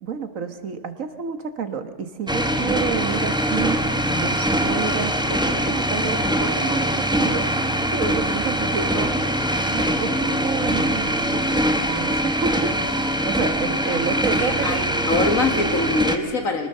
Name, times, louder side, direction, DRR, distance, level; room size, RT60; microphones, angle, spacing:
voice 1, 0.0-3.8 4.1-7.5 7.9-9.2 9.5-15.0, right 6 dB, 75° right, 9 dB, 1.8 m, -29 dB
sound 1, 2.3-16.2, equal, 5° right, 1.1 m, -23 dB
voice 2, 13.9-16.7, left 2 dB, 75° left, 5 dB, 2.5 m, -24 dB
25.5 x 19.0 x 6.7 m, 1.6 s
omnidirectional pair, 1.4 m